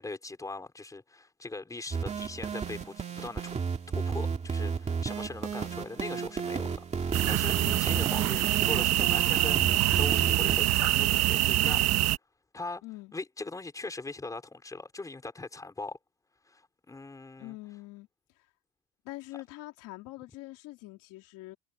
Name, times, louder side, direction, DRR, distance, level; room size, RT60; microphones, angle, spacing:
voice 1, 0.0-3.5 3.9-11.8 12.5-12.8 13.1-16.0 16.5-17.6, left 3 dB, 10° left, 4.8 m, -40 dB
sound 1, 1.9-10.6, right 5 dB, 20° right, 2.3 m, -33 dB
sound 2, 7.1-12.2, right 15 dB, 45° right, 1.2 m, -25 dB
voice 2, 12.8-13.1 17.4-18.1 18.4-18.5 19.0-21.6, left 19 dB, 65° left, 3.5 m, -44 dB
cardioid pair, 175°, 36 cm